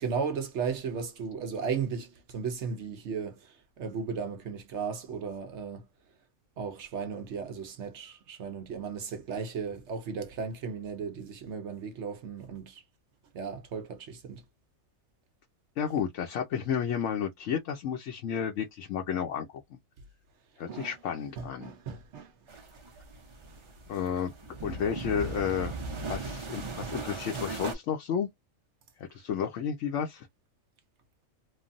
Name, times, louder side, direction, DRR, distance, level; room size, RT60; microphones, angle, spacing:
voice 1, 0.0-5.9 6.6-12.8 13.3-14.4 20.7-21.0 21.4-22.3 23.5-23.7, right 6 dB, 65° right, 0.9 m, -35 dB
voice 2, 15.8-19.5 20.6-21.7 23.9-25.7 26.1-28.3 29.1-30.3, left 7 dB, 70° left, 1.0 m, -32 dB
sound 1, 22.5-27.7, right 3 dB, 35° right, 0.5 m, -38 dB
3.2 x 2.2 x 2.5 m
omnidirectional pair, 1.3 m